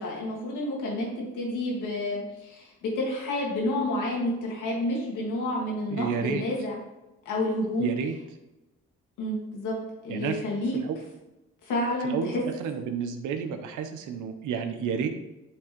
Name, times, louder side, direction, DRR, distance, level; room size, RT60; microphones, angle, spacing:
voice 1, 0.0-6.8 7.3-7.9 9.2-9.7 10.0-10.8 11.6-12.4, left 1 dB, 85° left, -3 dB, 1.9 m, -29 dB
voice 2, 5.9-6.4 7.8-8.1 10.1-10.4 10.7-11.0 12.0-15.1, right 7 dB, 85° right, 6 dB, 0.9 m, -31 dB
11.0 x 3.7 x 3.1 m, 0.99 s
cardioid pair, 90°, 30 cm